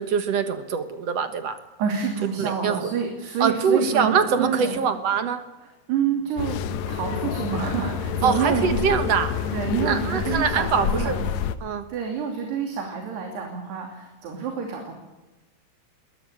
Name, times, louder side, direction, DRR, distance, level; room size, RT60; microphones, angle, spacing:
voice 1, 0.0-1.6 2.4-2.9 3.4-5.4 8.2-9.4 9.8-11.2 11.6-11.8, right 6 dB, 60° right, 9 dB, 1.8 m, -23 dB
voice 2, 1.8-4.1 4.4-4.8 5.6-6.6 6.9-8.9 9.5-11.2 11.9-15.0, right 6 dB, 80° right, 2 dB, 4.9 m, -28 dB
sound 1, 6.4-11.6, left 7 dB, 85° left, 1.5 m, -28 dB
21.5 x 19.0 x 8.8 m, 1.1 s
omnidirectional pair, 4.7 m